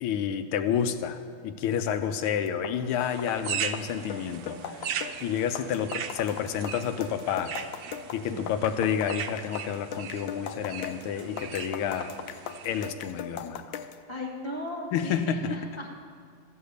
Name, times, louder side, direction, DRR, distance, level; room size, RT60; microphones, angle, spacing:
voice 1, 0.0-7.6 8.1-12.1 12.6-13.8 14.9-15.6, left 8 dB, 90° left, 9 dB, 1.6 m, -30 dB
sound 1, 2.5-14.0, left 8 dB, 75° left, 1.2 m, -39 dB
sound 2, 3.0-12.9, right 8 dB, 80° right, 0.8 m, -38 dB
voice 2, 14.1-15.9, left 1 dB, 30° right, -1 dB, 0.5 m, -37 dB
14.0 x 8.0 x 6.7 m, 2.1 s
omnidirectional pair, 2.3 m